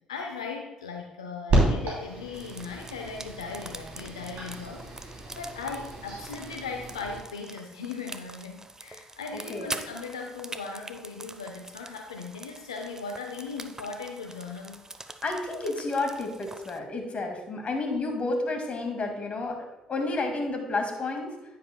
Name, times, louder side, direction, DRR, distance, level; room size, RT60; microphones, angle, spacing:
voice 1, 0.1-14.8, left 4 dB, 90° left, 3 dB, 0.5 m, -38 dB
sound 1, 1.5-7.2, right 2 dB, 60° right, 3.0 m, -31 dB
sound 2, 2.3-16.8, right 2 dB, 20° right, 0.7 m, -44 dB
voice 2, 9.3-9.8 15.2-21.3, left 2 dB, 45° left, 4 dB, 2.0 m, -31 dB
9.8 x 9.8 x 2.2 m, 0.97 s
hypercardioid pair, 45°, 3 cm